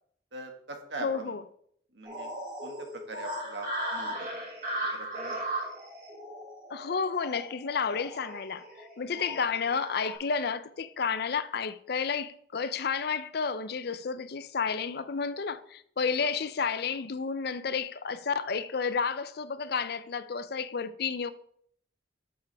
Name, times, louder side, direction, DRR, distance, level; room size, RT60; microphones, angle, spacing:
voice 1, 0.3-1.3 1.9-2.3 2.6-4.5 4.9-5.4 9.1-9.2 16.2-16.3, right 2 dB, 85° right, 1.8 m, -42 dB
voice 2, 1.0-1.4 6.7-21.3, left 5 dB, 60° left, 0.5 m, -31 dB
sound 1, 2.0-10.1, right 1 dB, 50° right, 3.8 m, -37 dB
11.5 x 7.0 x 3.5 m
head